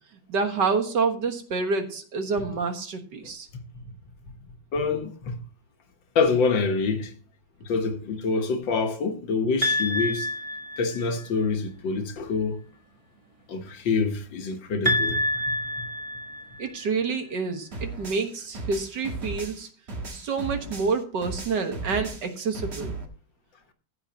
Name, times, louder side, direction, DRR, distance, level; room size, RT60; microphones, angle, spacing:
voice 1, 0.3-3.5 16.6-19.7 20.1-23.0, right 4 dB, 70° right, 2.0 m, -28 dB
voice 2, 4.4-5.4 6.2-7.1 7.6-10.3 10.8-12.6 13.5-15.2 15.5-15.9, left 4 dB, 85° left, 2.0 m, -26 dB
sound 1, 9.6-11.3 14.9-16.9, left 1 dB, 20° right, 1.4 m, -27 dB
sound 2, 17.7-21.0 21.2-23.1, right 3 dB, 35° right, 1.6 m, -36 dB
15.5 x 7.9 x 2.9 m
omnidirectional pair, 2.0 m